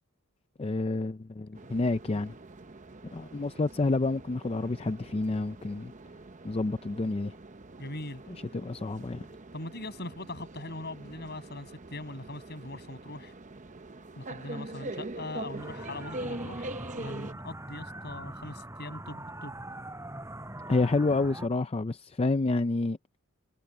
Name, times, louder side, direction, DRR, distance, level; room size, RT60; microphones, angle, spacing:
voice 1, 0.6-2.3 3.1-5.9 6.4-7.3 8.3-9.3 20.7-23.0, left 3 dB, 25° left, 0.4 m, -29 dB
sound 1, 1.5-17.3, right 2 dB, 35° right, 0.9 m, -43 dB
voice 2, 7.8-8.2 9.5-13.3 14.2-19.6, left 2 dB, 50° left, 7.6 m, -41 dB
sound 2, 15.6-21.5, right 1 dB, 15° right, 7.0 m, -42 dB
head